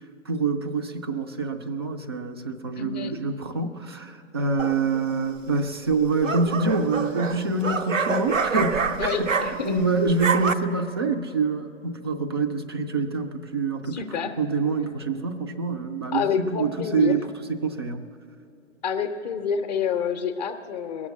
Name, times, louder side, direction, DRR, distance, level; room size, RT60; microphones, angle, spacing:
voice 1, 0.3-14.0 14.4-17.2 17.5-18.0, right 4 dB, 20° right, 7 dB, 0.3 m, -26 dB
voice 2, 2.8-3.2 9.0-9.9 13.9-14.4 16.1-17.2 18.8-21.1, left 7 dB, 35° left, 6 dB, 0.6 m, -28 dB
sound 1, 4.6-5.0 5.9-9.8 10.1-10.5, right 5 dB, 90° right, 0.7 m, -26 dB
20.5 x 7.3 x 8.1 m, 2.8 s
figure-of-eight pair, 125°, 38 cm